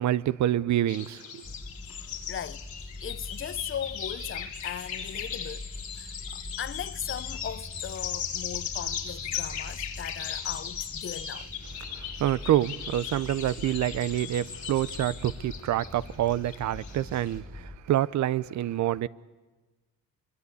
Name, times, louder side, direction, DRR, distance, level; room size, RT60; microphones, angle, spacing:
voice 1, 0.0-1.4 11.9-19.1, right 12 dB, 70° right, 0.7 m, -27 dB
sound 1, 0.9-17.3, left 8 dB, 70° left, 3.3 m, -38 dB
sound 2, 1.4-17.8, left 2 dB, 5° left, 1.3 m, -44 dB
voice 2, 2.3-5.6 5.9-11.5, left 9 dB, 45° left, 0.7 m, -38 dB
24.0 x 22.5 x 8.5 m
cardioid pair, 90°, 30 cm